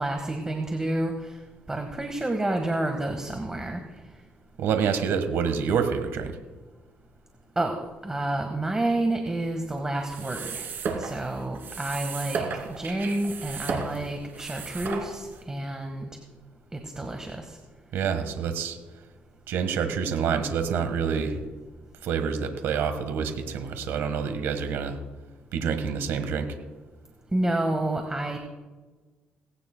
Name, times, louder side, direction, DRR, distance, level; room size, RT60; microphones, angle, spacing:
voice 1, 0.0-1.4 1.7-3.8 7.5-10.7 11.0-16.1 16.7-17.6 27.3-28.4, right 1 dB, 15° right, 4 dB, 1.5 m, -29 dB
voice 2, 4.6-6.4 17.9-18.8 19.5-21.4 22.0-25.0 25.5-26.5, right 6 dB, 80° right, 8 dB, 1.3 m, -27 dB
sound 1, 10.0-15.4, right 5 dB, 60° right, 2.6 m, -34 dB
18.0 x 16.5 x 2.2 m, 1.3 s
cardioid pair, 90°, 4 cm